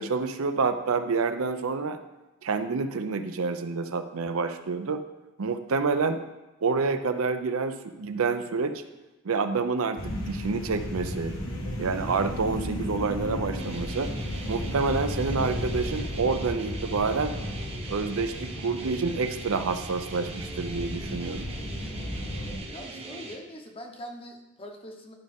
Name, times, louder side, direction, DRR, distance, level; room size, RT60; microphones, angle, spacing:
voice 1, 0.0-2.0 2.4-5.0 5.4-6.2 6.6-8.8 9.2-11.3 11.8-14.1 14.5-17.3 17.9-21.5, right 4 dB, 80° right, 9 dB, 0.6 m, -28 dB
sound 1, 10.0-22.6, left 1 dB, 75° left, 1.5 m, -34 dB
sound 2, 13.6-23.4, right 3 dB, 30° right, 0.9 m, -41 dB
voice 2, 22.7-25.1, equal, 25° left, 3 dB, 0.9 m, -42 dB
11.5 x 5.2 x 3.6 m, 1.0 s
head